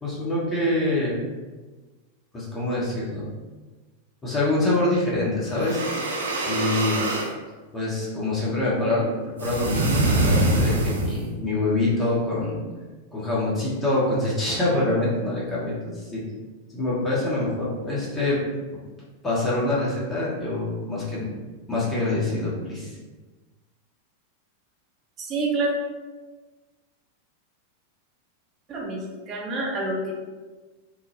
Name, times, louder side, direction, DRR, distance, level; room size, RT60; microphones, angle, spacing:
voice 1, 0.0-1.2 2.3-3.3 4.2-5.9 6.5-7.1 7.7-12.6 13.1-16.2 16.7-18.4 19.2-21.3 21.7-23.0, left 2 dB, 20° left, -7 dB, 1.0 m, -25 dB
sound 1, 5.5-7.3 9.4-11.3, right 2 dB, 70° right, 0.5 m, -24 dB
voice 2, 25.2-25.7 28.7-30.1, right 2 dB, 30° right, -2 dB, 0.6 m, -27 dB
3.6 x 2.1 x 2.9 m, 1.3 s
figure-of-eight pair, 90°, 0 cm